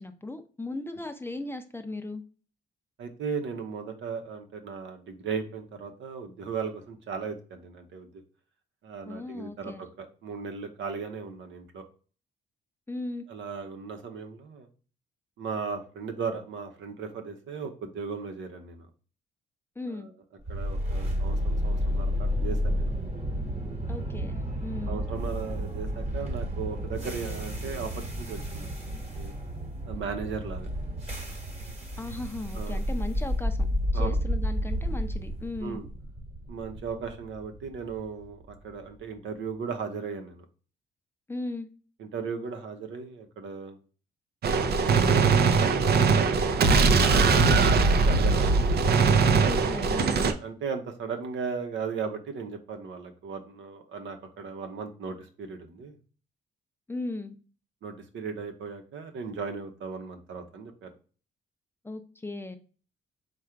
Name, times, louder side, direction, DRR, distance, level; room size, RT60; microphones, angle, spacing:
voice 1, 0.0-2.2 9.1-9.8 12.9-13.2 19.8-20.1 23.9-25.0 32.0-33.7 33.9-35.8 41.3-41.7 47.4-47.7 49.4-50.2 56.9-57.3 61.8-62.6, left 2 dB, 10° left, 7 dB, 0.6 m, -37 dB
voice 2, 3.0-8.1 8.8-11.8 13.3-14.7 15.4-18.8 19.9-20.1 20.5-22.9 24.9-28.7 29.2-29.4 29.9-30.7 32.5-32.8 33.9-34.2 35.6-35.9 36.5-40.4 42.0-43.8 44.8-46.4 46.9-48.6 50.2-55.9 57.8-60.9, right 5 dB, 70° right, 6 dB, 0.9 m, -36 dB
sound 1, 20.5-38.5, equal, 35° right, 1.3 m, -31 dB
Gunshot gunfire, 44.4-50.3, right 4 dB, 55° right, 0.6 m, -21 dB
3.7 x 2.5 x 4.5 m, 0.38 s
cardioid pair, 90°, 20 cm